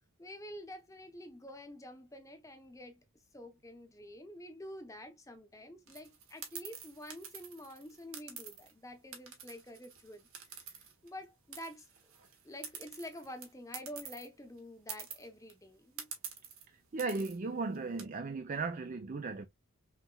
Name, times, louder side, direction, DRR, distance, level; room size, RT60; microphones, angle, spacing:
voice 1, 0.2-3.0 3.3-10.3 10.8-11.9 12.4-16.1, left 1 dB, 15° left, 0.8 m, -48 dB
sound 1, 5.9-8.7 9.1-11.2 11.5-14.3 14.6-14.7 14.9-15.5 16.0-16.6 17.0-17.4 17.7-18.0, right 7 dB, 70° right, 1.4 m, -47 dB
voice 2, 16.9-19.5, right 3 dB, 35° right, 0.4 m, -36 dB
5.7 x 2.9 x 2.2 m
head